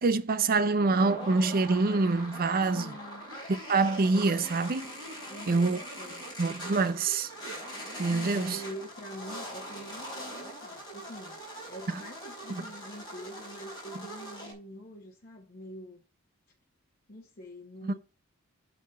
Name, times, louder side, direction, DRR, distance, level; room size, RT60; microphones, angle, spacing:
voice 1, 0.0-2.9 3.5-4.9 5.5-5.8 6.4-7.3 8.0-8.6 12.5-12.6 17.8-18.0, right 3 dB, 45° right, 0.6 m, -26 dB
sound 1, 0.7-14.5, equal, 20° left, 4.4 m, -42 dB
voice 2, 2.7-3.3 5.3-6.3 8.1-11.4 11.7-16.0 17.1-18.0, equal, 45° left, 1.4 m, -45 dB
8.4 x 4.1 x 5.4 m
head